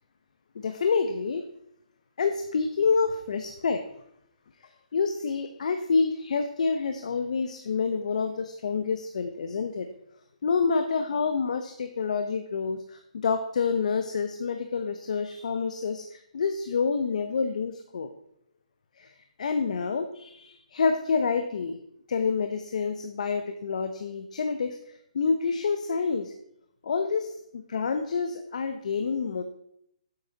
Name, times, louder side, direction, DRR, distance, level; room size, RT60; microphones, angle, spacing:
voice 1, 0.5-1.4 2.2-3.8 4.9-9.9 10.4-18.1 19.0-21.8 22.1-26.3 26.8-29.4, left 5 dB, 65° left, 7 dB, 0.9 m, -28 dB
9.8 x 8.1 x 4.0 m, 0.73 s
hypercardioid pair, 155°, 4 cm